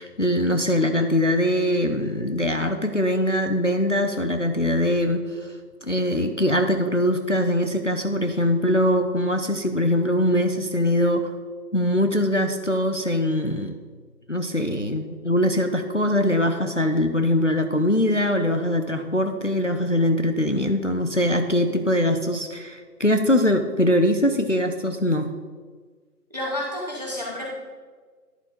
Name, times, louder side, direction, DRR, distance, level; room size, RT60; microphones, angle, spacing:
voice 1, 0.0-5.5 5.8-11.3 11.7-13.8 14.3-25.4, left 1 dB, 50° left, 6 dB, 0.5 m, -22 dB
voice 2, 26.3-27.5, left 1 dB, 25° right, -4 dB, 1.4 m, -30 dB
11.0 x 4.0 x 5.1 m, 1.5 s
figure-of-eight pair, 170°, 48 cm